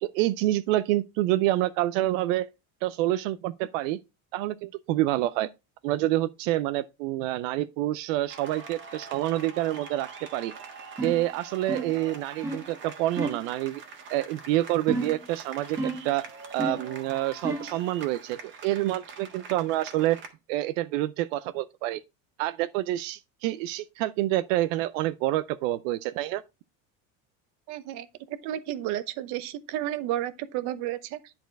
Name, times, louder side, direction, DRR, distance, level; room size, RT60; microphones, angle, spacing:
voice 1, 0.0-2.5 2.8-4.0 4.3-5.5 5.8-10.5 11.0-13.8 14.1-16.3 16.5-20.2 20.5-22.0 22.4-26.4, right 15 dB, 75° right, 0.6 m, -27 dB
sound 1, 8.3-20.3, right 5 dB, 30° right, 1.5 m, -44 dB
sound 2, 11.0-11.3 11.7-12.0 12.4-12.7 13.2-13.5 14.9-15.3 15.8-16.1 16.6-16.9 17.4-17.8, right 2 dB, 10° right, 1.2 m, -31 dB
voice 2, 27.7-31.3, right 13 dB, 50° right, 0.8 m, -32 dB
10.5 x 4.3 x 4.6 m
cardioid pair, 175°, 38 cm